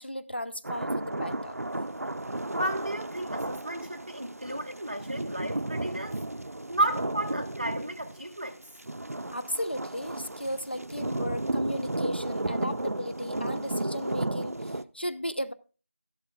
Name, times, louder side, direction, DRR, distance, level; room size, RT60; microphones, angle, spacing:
voice 1, 0.0-1.6 9.3-15.5, equal, 45° left, 0.5 m, -35 dB
sound 1, 0.6-14.8, right 1 dB, 75° right, 0.5 m, -33 dB
voice 2, 2.6-6.2 6.7-8.6, right 1 dB, 35° right, 1.0 m, -33 dB
13.5 x 11.5 x 2.4 m
figure-of-eight pair, 175°, 8 cm